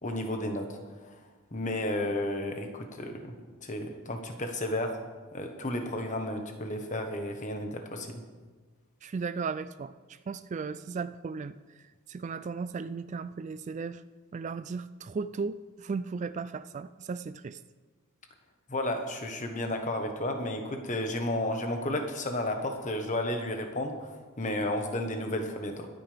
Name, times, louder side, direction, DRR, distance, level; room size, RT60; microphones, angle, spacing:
voice 1, 0.0-1.2 1.5-3.3 3.6-5.0 5.3-8.2 18.7-25.9, left 1 dB, 35° left, 5 dB, 1.3 m, -32 dB
voice 2, 9.0-11.5 12.1-14.0 14.3-17.6, right 5 dB, 35° right, 13 dB, 0.3 m, -36 dB
22.5 x 9.3 x 3.5 m, 1.4 s
head